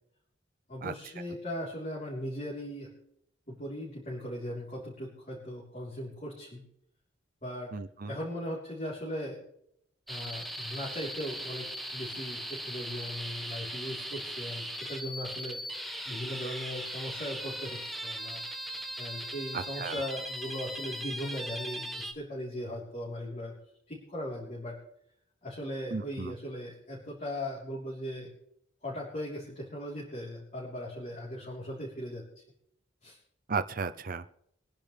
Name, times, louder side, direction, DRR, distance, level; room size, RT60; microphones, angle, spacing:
voice 1, 0.7-2.9 3.5-6.7 7.4-7.7 8.1-9.4 10.1-15.6 16.1-18.5 19.0-23.5 23.9-24.8 25.4-28.3 28.8-32.2 33.0-33.2, equal, 40° left, -5 dB, 3.7 m, -38 dB
voice 2, 7.7-8.1 19.5-20.0 25.9-26.3 33.5-34.2, right 5 dB, 45° right, 11 dB, 0.5 m, -34 dB
sound 1, 10.1-22.1, equal, ahead, 1.3 m, -39 dB
23.5 x 10.5 x 3.3 m, 0.74 s
head